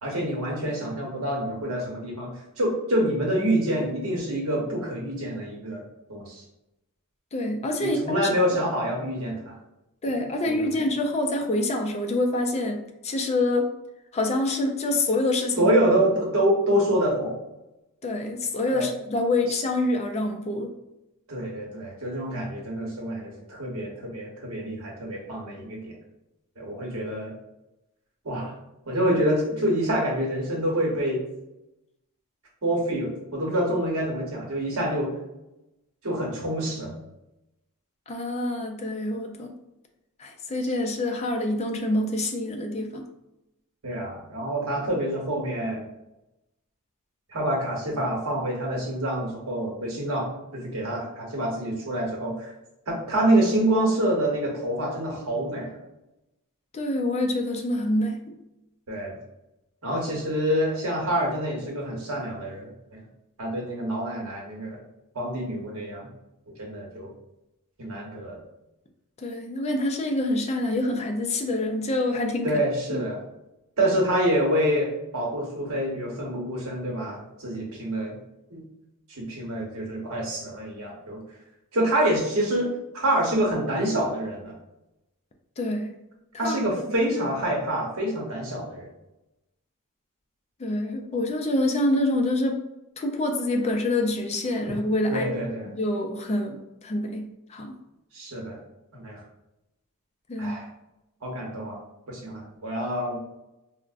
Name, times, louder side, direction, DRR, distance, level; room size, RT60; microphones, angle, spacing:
voice 1, 0.0-2.3 2.6-5.8 6.1-6.4 7.8-9.4 10.0-10.1 10.4-10.7 15.6-17.3 18.7-18.9 21.3-25.9 26.6-27.4 28.2-28.5 28.9-31.2 32.6-35.1 36.0-37.0 43.8-45.8 47.3-52.5 52.9-55.8 58.9-59.1 59.8-63.0 63.4-64.8 65.1-66.1 66.6-67.1 67.8-68.4 72.4-73.2 73.8-78.2 78.5-78.6 79.1-81.2 81.7-84.5 86.4-88.9 95.1-95.7 98.1-98.6 98.9-99.2 100.4-100.7 101.2-101.8 102.1-103.2, right 1 dB, 70° right, -2 dB, 1.0 m, -26 dB
voice 2, 7.3-8.3 10.0-13.7 14.1-15.7 16.0-16.1 18.0-20.7 38.1-39.5 40.2-43.1 56.7-58.2 69.2-72.5 85.6-86.0 86.3-86.6 86.9-87.0 90.6-92.6 93.0-95.3 95.7-97.8 100.3-100.7, left 1 dB, 30° left, 4 dB, 0.4 m, -26 dB
4.5 x 2.1 x 2.4 m, 0.92 s
head